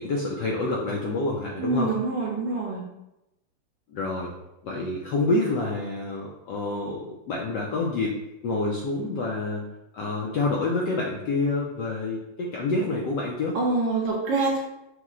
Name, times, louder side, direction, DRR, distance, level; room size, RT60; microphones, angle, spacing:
voice 1, 0.0-1.9 3.9-4.3 4.6-9.7 9.9-13.6, left 2 dB, 75° left, -2 dB, 1.0 m, -28 dB
voice 2, 1.6-2.8 13.5-14.6, right 3 dB, 70° right, -2 dB, 1.1 m, -25 dB
5.8 x 2.1 x 3.7 m, 0.90 s
omnidirectional pair, 2.4 m